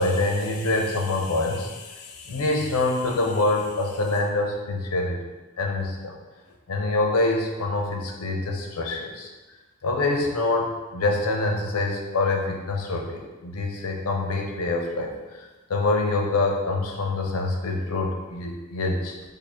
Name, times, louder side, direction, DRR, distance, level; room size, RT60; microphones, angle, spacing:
voice 1, 0.0-5.2 5.6-6.1 6.7-9.3 9.8-15.1 15.7-19.2, left 2 dB, 80° left, 1 dB, 0.6 m, -25 dB
2.7 x 2.6 x 4.3 m, 1.2 s
head